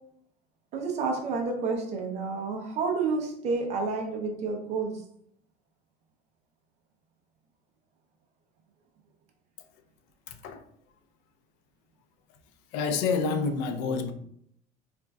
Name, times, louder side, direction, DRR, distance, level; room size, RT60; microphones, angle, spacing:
voice 1, 0.7-5.0, right 4 dB, 35° right, 0.6 m, -30 dB
voice 2, 10.3-10.6 12.7-14.1, left 5 dB, 65° left, 0.4 m, -28 dB
4.1 x 2.5 x 2.2 m
cardioid pair, 165°, 19 cm